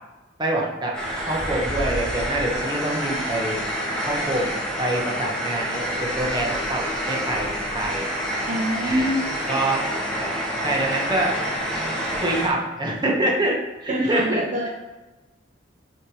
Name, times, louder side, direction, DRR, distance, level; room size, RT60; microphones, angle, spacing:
voice 1, 0.4-0.9 1.3-3.6 4.1-4.5 4.8-7.5 7.7-8.0 8.8-9.1 9.5-9.8 10.6-11.3 12.2-14.7, right 1 dB, 25° right, -2 dB, 1.4 m, -25 dB
sound 1, 0.9-12.5, equal, 5° left, 1.8 m, -28 dB
voice 2, 8.5-9.2 9.5-9.7 13.9-14.7, equal, 45° right, -1 dB, 0.8 m, -25 dB
6.2 x 6.0 x 4.8 m, 1.1 s
head